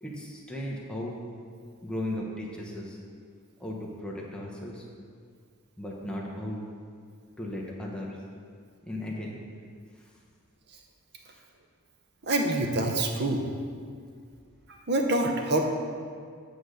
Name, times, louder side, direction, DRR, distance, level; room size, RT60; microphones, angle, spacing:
voice 1, 0.0-1.2 1.8-3.0 3.6-4.9 5.8-6.7 7.4-8.2 8.8-9.4 10.0-10.1 11.3-11.4, left 1 dB, 5° left, -4 dB, 0.8 m, -36 dB
voice 2, 12.2-13.5 14.7-15.7, right 2 dB, 50° right, 3 dB, 0.8 m, -26 dB
8.2 x 3.9 x 6.4 m, 2.1 s
head